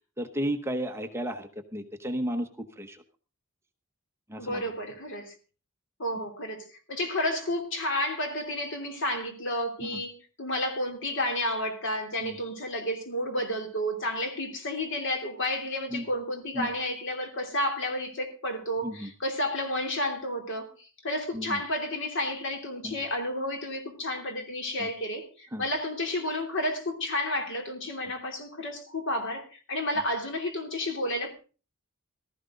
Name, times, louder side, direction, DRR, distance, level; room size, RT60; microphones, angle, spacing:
voice 1, 0.2-3.0 4.3-4.6 9.8-10.0 12.2-12.4 15.9-16.1 16.5-16.7 18.8-19.1 21.3-21.6 22.8-23.0 24.8-24.9 25.5-25.6, equal, 10° right, 0.9 m, -33 dB
voice 2, 4.4-5.3 6.0-31.3, left 1 dB, 60° left, 3.0 m, -31 dB
15.5 x 14.0 x 3.8 m
head